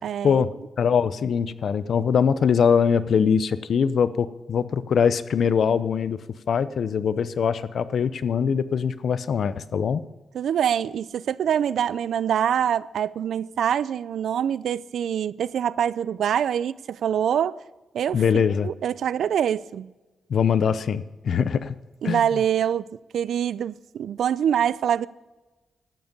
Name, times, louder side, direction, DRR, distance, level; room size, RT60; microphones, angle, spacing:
voice 1, 0.0-0.4 10.3-17.6 17.9-19.9 22.0-22.9 23.1-25.1, right 9 dB, 85° right, 0.4 m, -25 dB
voice 2, 0.8-6.2 6.5-10.0 18.1-18.7 20.3-21.7 22.0-22.2, left 7 dB, 70° left, 0.7 m, -22 dB
13.5 x 9.7 x 5.3 m
cardioid pair, 85°, 0 cm